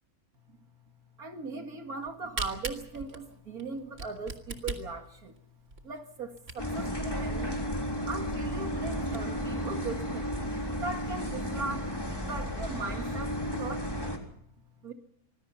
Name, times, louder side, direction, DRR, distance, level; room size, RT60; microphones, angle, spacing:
voice 1, 1.2-5.3 5.8-7.7 8.1-10.5 10.7-13.9 14.8-14.9, right 3 dB, 80° right, 5 dB, 2.5 m, -39 dB
Camera, 2.0-6.9 7.5-7.6 7.8-7.9 8.3-8.4 8.8-9.2, right 3 dB, 55° right, 2.8 m, -39 dB
sound 1, 6.6-14.2, equal, 15° left, 3.7 m, -33 dB
26.0 x 20.5 x 5.7 m, 0.73 s
omnidirectional pair, 1.5 m